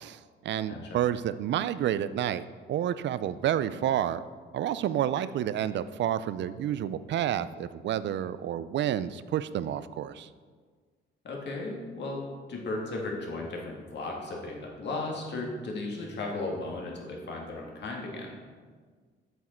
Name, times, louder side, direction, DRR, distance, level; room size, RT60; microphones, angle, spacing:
voice 1, 0.0-2.4 2.7-4.2 4.5-10.3, right 11 dB, 65° right, 15 dB, 0.4 m, -29 dB
voice 2, 0.7-1.0 11.2-12.2 12.5-18.3, left 2 dB, 60° left, -1 dB, 2.0 m, -35 dB
7.9 x 7.3 x 4.4 m, 1.5 s
cardioid pair, 90°, 20 cm